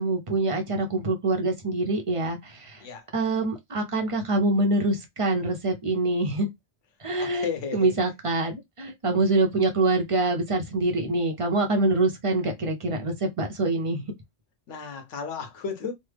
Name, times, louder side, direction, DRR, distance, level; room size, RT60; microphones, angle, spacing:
voice 1, 0.0-2.8 3.1-6.5 7.0-14.1, right 2 dB, 40° right, 0.5 m, -25 dB
voice 2, 7.2-7.9 14.7-15.9, left 6 dB, 80° left, 1.1 m, -34 dB
3.3 x 2.0 x 3.2 m
omnidirectional pair, 1.2 m